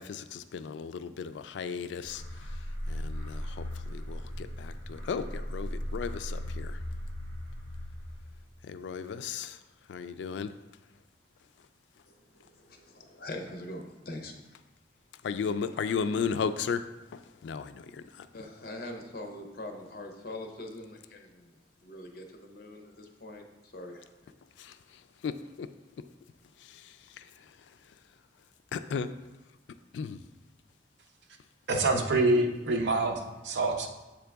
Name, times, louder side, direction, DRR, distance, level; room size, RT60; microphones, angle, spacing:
voice 1, 0.0-2.6 2.9-6.8 8.6-9.6 9.9-10.5 15.2-18.3 24.6-25.7 26.0-26.1 26.6-27.6 28.7-29.1 29.9-30.2, left 6 dB, 80° left, 11 dB, 0.3 m, -36 dB
sound 1, 2.0-8.6, equal, 5° right, 1.4 m, -37 dB
voice 2, 12.1-14.4 18.3-21.5 21.8-23.4 23.7-24.4, left 1 dB, 60° left, 3 dB, 0.8 m, -43 dB
voice 3, 31.7-33.9, right 2 dB, 75° right, 4 dB, 0.7 m, -26 dB
7.5 x 3.8 x 3.4 m, 1.1 s
head